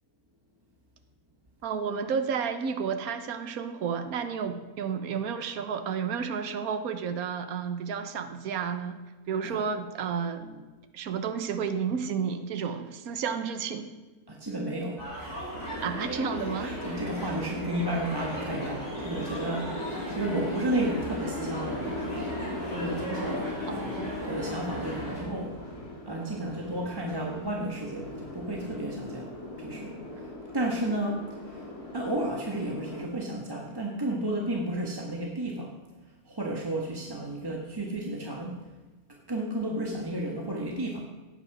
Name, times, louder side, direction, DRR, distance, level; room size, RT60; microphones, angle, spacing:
voice 1, 1.6-10.5 10.9-13.9 15.8-16.8 23.7-24.2, right 6 dB, 70° right, 8 dB, 1.4 m, -31 dB
voice 2, 14.3-15.0 16.5-22.4 22.7-23.6 24.2-25.6 26.1-29.3 29.6-31.7 31.9-35.7 36.3-38.6 39.3-41.0, right 1 dB, 15° right, -1 dB, 1.3 m, -32 dB
sound 1, 15.0-25.2, right 1 dB, 45° left, 6.4 m, -38 dB
sound 2, 15.5-33.0, left 2 dB, 80° left, 3.6 m, -38 dB
16.5 x 9.5 x 6.0 m, 1.2 s
omnidirectional pair, 1.6 m